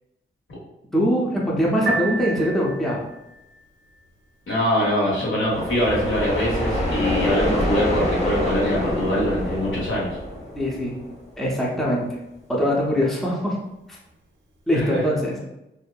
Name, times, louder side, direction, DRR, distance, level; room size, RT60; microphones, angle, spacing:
voice 1, 0.9-3.0 10.6-11.0 11.4-12.1 12.5-13.6 14.7-15.3, equal, ahead, -4 dB, 0.6 m, -22 dB
Piano, 1.7-14.7, right 3 dB, 65° right, 0.7 m, -39 dB
voice 2, 4.5-10.2 14.7-15.0, equal, 65° left, -6 dB, 1.4 m, -23 dB
sound 1, 5.5-11.2, left 1 dB, 30° left, 1.0 m, -26 dB
2.7 x 2.5 x 2.3 m, 0.93 s
cardioid pair, 70°, 21 cm